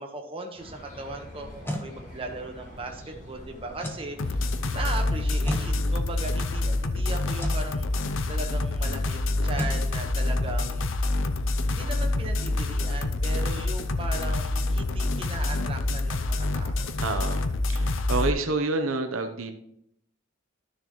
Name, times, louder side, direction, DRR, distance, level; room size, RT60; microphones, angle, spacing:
voice 1, 0.0-4.4 4.7-10.9 11.7-16.9, right 2 dB, 25° right, 2 dB, 1.2 m, -38 dB
sound 1, 0.6-6.0, left 1 dB, 40° left, 4.0 m, -45 dB
sound 2, 1.4-1.9 3.8-4.1 5.4-5.7 7.4-7.6 9.6-9.8, left 1 dB, 10° left, 1.1 m, -32 dB
sound 3, 4.2-18.3, left 2 dB, 65° left, 0.6 m, -27 dB
voice 2, 17.0-17.4 17.7-19.5, right 3 dB, 80° right, 6 dB, 0.9 m, -28 dB
12.0 x 6.6 x 3.1 m, 0.74 s
head